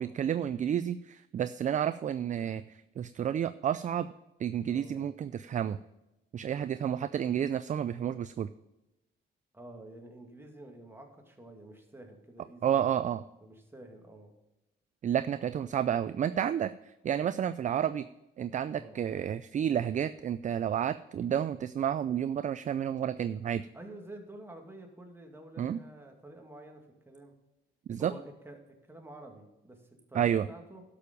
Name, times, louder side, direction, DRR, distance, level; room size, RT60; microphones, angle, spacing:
voice 1, 0.0-2.6 3.0-4.1 4.4-5.8 6.3-8.5 12.6-13.2 15.0-16.7 17.0-18.0 18.4-23.6 25.6-25.8 27.9-28.1 30.1-30.5, right 9 dB, 40° right, 14 dB, 0.4 m, -30 dB
voice 2, 4.7-5.1 9.5-12.8 13.4-14.3 18.7-19.0 23.7-27.3 28.0-30.8, right 1 dB, 10° right, 2 dB, 2.2 m, -49 dB
11.5 x 6.9 x 5.2 m, 0.95 s
cardioid pair, 90°, 20 cm